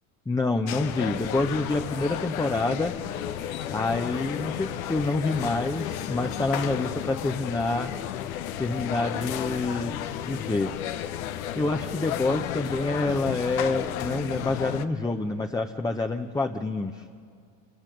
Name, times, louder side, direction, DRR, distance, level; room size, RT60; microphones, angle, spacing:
voice 1, 0.3-2.9 3.7-7.9 8.6-10.7 11.5-17.0, left 2 dB, 10° left, 5 dB, 0.8 m, -27 dB
sound 1, 0.7-14.9, left 11 dB, 90° left, 0.9 m, -33 dB
28.0 x 18.0 x 5.3 m, 2.2 s
hypercardioid pair, 85°, 40 cm